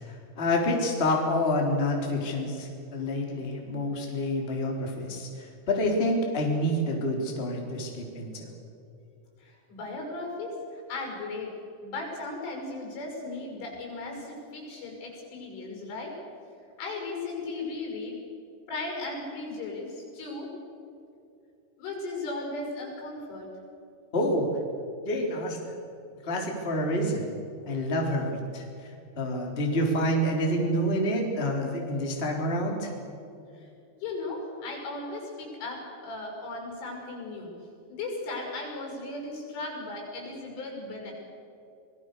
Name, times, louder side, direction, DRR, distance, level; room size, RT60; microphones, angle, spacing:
voice 1, 0.0-8.5 24.1-24.5 25.0-25.7 26.2-27.3 27.7-32.9, left 1 dB, 15° left, 0 dB, 2.9 m, -28 dB
voice 2, 9.4-11.6 11.8-16.2 16.8-18.2 18.7-20.5 21.8-23.5 33.6-33.7 34.0-37.5 37.9-41.1, left 2 dB, 85° left, 1 dB, 8.3 m, -36 dB
25.5 x 20.0 x 6.7 m, 2.7 s
omnidirectional pair, 5.5 m